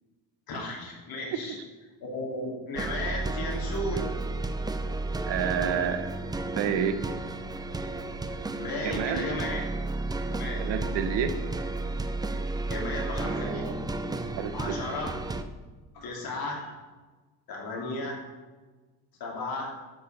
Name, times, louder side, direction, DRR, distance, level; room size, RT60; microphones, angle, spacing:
voice 1, 0.5-1.6 2.0-4.1 8.6-9.6 10.3-10.6 12.7-13.7 14.5-15.1 15.9-16.8 17.5-18.3 19.2-19.8, left 2 dB, 60° left, -1 dB, 3.1 m, -34 dB
sound 1, 2.8-15.4, right 2 dB, 10° right, 0.4 m, -32 dB
voice 2, 5.3-6.1 6.5-7.0 8.8-9.3 10.6-11.3 12.7-12.8 13.2-13.7 14.4-14.8, right 8 dB, 85° right, 9 dB, 1.2 m, -30 dB
11.0 x 5.8 x 7.1 m, 1.3 s
cardioid pair, 155°, 41 cm